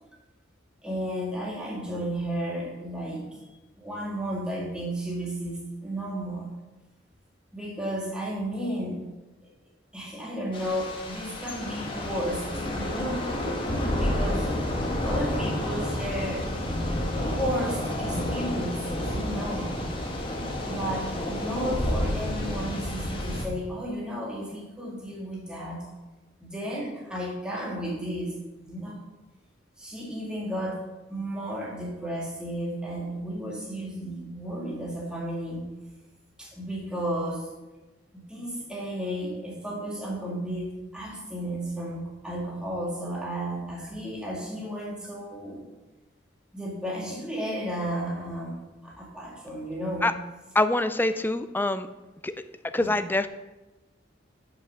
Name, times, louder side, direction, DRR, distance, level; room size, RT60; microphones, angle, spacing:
voice 1, 0.8-3.4 3.8-6.5 7.5-9.0 9.9-12.5 12.7-13.4 14.0-14.5 15.0-16.5 17.2-19.7 20.6-25.9 26.4-28.3 28.6-29.0 29.8-35.7 36.4-37.5 38.1-45.7 46.5-50.1 52.8-53.0, equal, 5° right, -4 dB, 2.0 m, -33 dB
Thunder / Rain, 10.5-23.4, left 1 dB, 30° left, 1.5 m, -30 dB
voice 2, 50.5-51.9 52.2-52.3 52.7-53.3, left 2 dB, 10° left, 10 dB, 0.4 m, -24 dB
8.3 x 5.7 x 6.5 m, 1.1 s
head